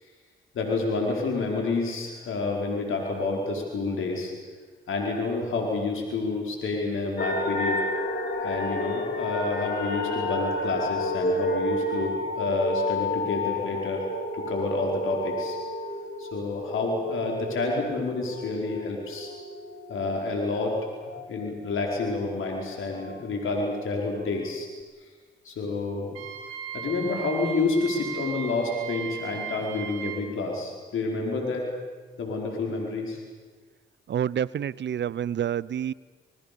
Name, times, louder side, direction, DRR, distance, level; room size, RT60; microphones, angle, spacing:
voice 1, 0.5-4.3 4.9-7.8 8.4-14.0 14.3-15.6 16.2-19.3 19.9-20.8 21.3-24.7 25.4-26.2 26.7-31.6 32.2-33.2, left 3 dB, 70° left, 0 dB, 4.9 m, -29 dB
sound 1, 7.2-22.0 22.4-23.8 24.3-24.4, left 1 dB, 50° left, 4.3 m, -31 dB
Wind instrument woodwind instrument, 26.1-30.3, right 8 dB, 90° right, 2.1 m, -37 dB
voice 2, 34.1-35.9, right 9 dB, 55° right, 22 dB, 0.7 m, -28 dB
28.5 x 20.5 x 7.0 m, 1.4 s
supercardioid pair, 45°, 21 cm